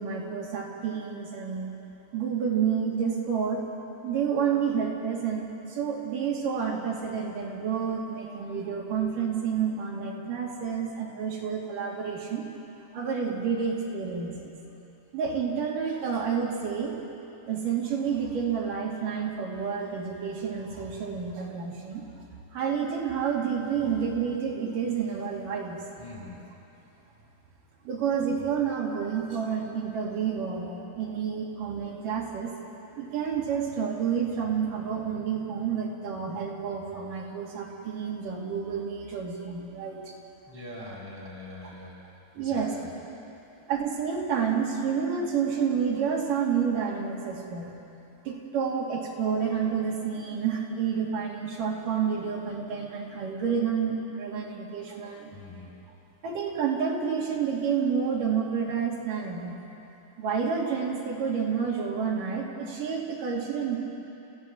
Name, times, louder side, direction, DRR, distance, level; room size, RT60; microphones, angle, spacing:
voice 1, 0.0-1.7 2.1-3.6 4.0-12.5 12.9-14.6 15.1-16.9 17.5-22.1 22.5-25.8 27.8-32.5 32.9-40.2 42.4-42.7 43.7-47.7 48.3-55.4 56.2-59.6 60.2-63.8, right 6 dB, 55° right, -2 dB, 3.9 m, -29 dB
voice 2, 26.0-26.4 40.5-41.9 42.3-43.0 55.3-55.8, left 1 dB, 5° left, -3 dB, 3.7 m, -42 dB
30.0 x 14.5 x 7.7 m, 2.9 s
omnidirectional pair, 4.9 m